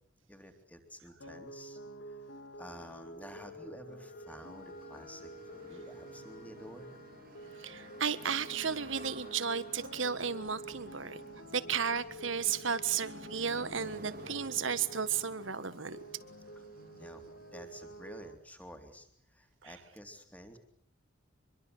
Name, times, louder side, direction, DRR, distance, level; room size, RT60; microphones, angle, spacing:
voice 1, 0.3-2.3 2.6-7.0 17.0-20.6, equal, 5° left, 5 dB, 3.5 m, -51 dB
sound 1, 1.2-18.3, right 1 dB, 65° left, 2.4 m, -49 dB
Wind instrument woodwind instrument, 4.1-10.5, left 3 dB, 35° left, 4.1 m, -58 dB
sound 2, 4.3-18.3, right 2 dB, 45° right, 2.1 m, -53 dB
voice 2, 7.6-11.2 11.5-16.0, right 7 dB, 70° right, 14 dB, 1.6 m, -34 dB
25.5 x 23.0 x 8.0 m, 0.65 s
head